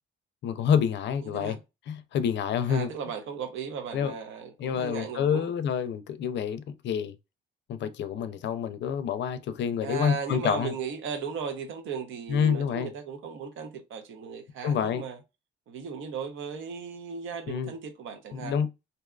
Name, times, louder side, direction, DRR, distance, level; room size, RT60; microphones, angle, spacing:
voice 1, 0.4-1.6 1.9-2.9 3.9-4.1 4.6-7.1 7.7-10.7 12.3-12.9 14.6-15.0 17.5-17.7 18.3-18.7, left 8 dB, 65° left, 0.4 m, -28 dB
voice 2, 1.2-1.6 2.7-5.5 9.8-15.2 15.7-18.6, right 6 dB, 80° right, 0.7 m, -36 dB
2.7 x 2.3 x 2.3 m
cardioid pair, 90°, 20 cm